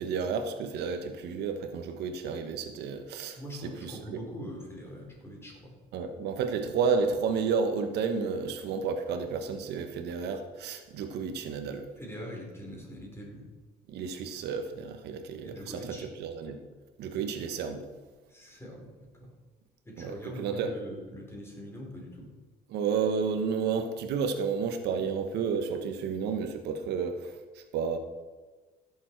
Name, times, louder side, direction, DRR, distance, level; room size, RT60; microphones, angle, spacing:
voice 1, 0.0-4.2 5.9-11.8 13.9-16.6 17.0-17.9 20.0-20.7 22.7-28.0, right 5 dB, 80° right, 6 dB, 1.2 m, -31 dB
voice 2, 3.4-5.7 12.0-13.4 15.4-16.1 18.3-19.3 19.8-22.3, equal, 15° left, -1 dB, 4.1 m, -43 dB
15.5 x 7.2 x 4.6 m, 1.3 s
cardioid pair, 110°, 17 cm